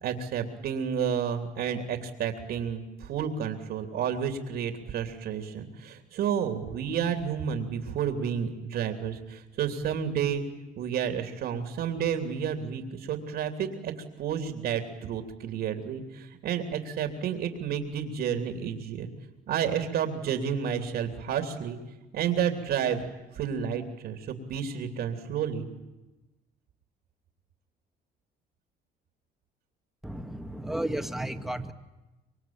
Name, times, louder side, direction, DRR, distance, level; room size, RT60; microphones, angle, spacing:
voice 1, 0.0-10.4 10.8-13.9 14.2-19.1 19.5-21.8 22.1-23.0 23.3-25.7, right 8 dB, 70° right, 6 dB, 3.1 m, -31 dB
voice 2, 30.0-31.7, right 1 dB, ahead, 7 dB, 2.1 m, -33 dB
26.0 x 23.5 x 8.9 m, 1.1 s
cardioid pair, 110°, 17 cm